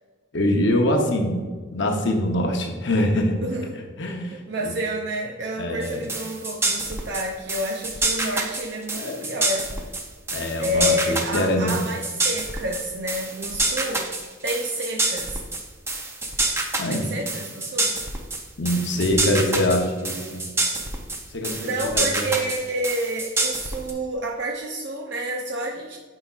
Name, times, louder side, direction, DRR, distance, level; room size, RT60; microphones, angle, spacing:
voice 1, 0.3-1.4 1.7-3.4 3.7-4.7 5.6-6.0 8.9-9.3 10.3-11.8 16.8-17.1 18.6-20.5 21.3-22.3, left 1 dB, 60° left, 3 dB, 0.8 m, -24 dB
voice 2, 3.4-3.8 4.3-9.7 10.6-14.1 14.4-15.4 16.9-17.9 21.5-26.0, right 1 dB, 55° right, 1 dB, 0.5 m, -29 dB
sound 1, 5.8-23.9, right 2 dB, 10° right, 0.6 m, -27 dB
9.8 x 4.9 x 2.4 m, 1.5 s
head